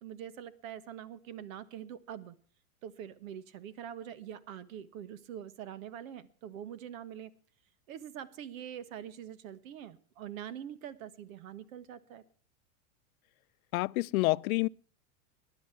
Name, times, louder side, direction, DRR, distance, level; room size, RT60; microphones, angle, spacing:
voice 1, 0.0-2.4 2.8-7.3 7.9-12.2, right 9 dB, 70° right, 1.4 m, -44 dB
voice 2, 13.7-14.7, left 21 dB, 75° left, 0.5 m, -28 dB
19.0 x 10.5 x 4.6 m
supercardioid pair, 140°, 43 cm